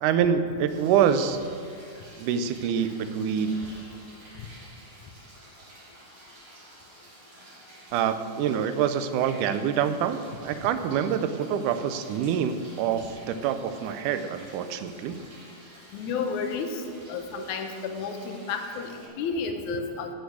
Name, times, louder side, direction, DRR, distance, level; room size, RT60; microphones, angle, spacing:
voice 1, 0.0-1.4 2.2-3.6 7.9-15.2, right 8 dB, 80° right, 10 dB, 2.2 m, -26 dB
sound 1, 0.7-19.1, right 1 dB, 50° right, 4.2 m, -50 dB
voice 2, 15.9-16.8 17.1-18.9 19.2-20.1, left 5 dB, 70° left, 5 dB, 2.3 m, -31 dB
16.0 x 7.1 x 6.2 m, 2.3 s
omnidirectional pair, 3.7 m